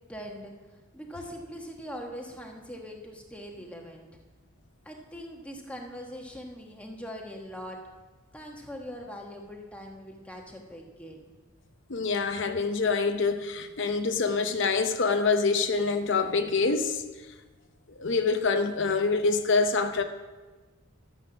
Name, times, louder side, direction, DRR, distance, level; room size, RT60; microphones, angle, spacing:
voice 1, 0.1-0.5 0.9-4.1 4.8-7.8 8.3-11.2, equal, 5° left, 1 dB, 1.2 m, -41 dB
voice 2, 11.9-17.0 18.0-20.0, left 4 dB, 55° left, 7 dB, 0.7 m, -26 dB
12.5 x 8.0 x 6.0 m, 1.3 s
head